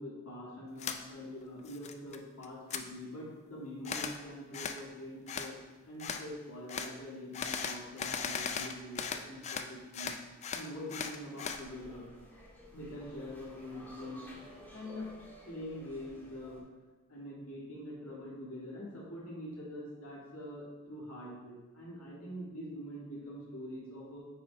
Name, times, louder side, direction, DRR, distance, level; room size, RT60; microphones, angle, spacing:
voice 1, 0.0-5.6 5.9-10.1 10.5-12.0 12.7-14.3 14.7-15.1 15.5-16.6 17.1-24.2, left 1 dB, 75° left, -6 dB, 2.0 m, -44 dB
sound 1, 0.8-1.0 1.4-2.2 2.4-2.8 3.8-4.2 4.5-4.8 5.3-5.5 6.0-6.2 6.7-6.9 7.3-9.7 9.9-11.6, left 6 dB, 30° left, 0.3 m, -37 dB
sound 2, 11.5-16.6, equal, 10° left, 1.3 m, -53 dB
9.0 x 3.5 x 3.9 m, 1.2 s
head